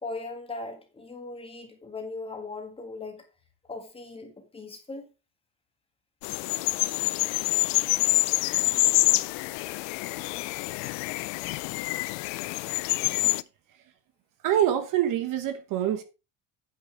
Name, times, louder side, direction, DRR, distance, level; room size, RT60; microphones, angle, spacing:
voice 1, 0.0-3.2 3.7-5.1, left 3 dB, 15° left, 1.7 m, -39 dB
sound 1, 6.2-13.4, left 22 dB, 85° left, 0.6 m, -26 dB
voice 2, 14.4-16.0, right 11 dB, 50° right, 1.1 m, -25 dB
9.2 x 8.2 x 3.5 m
cardioid pair, 165°, 42 cm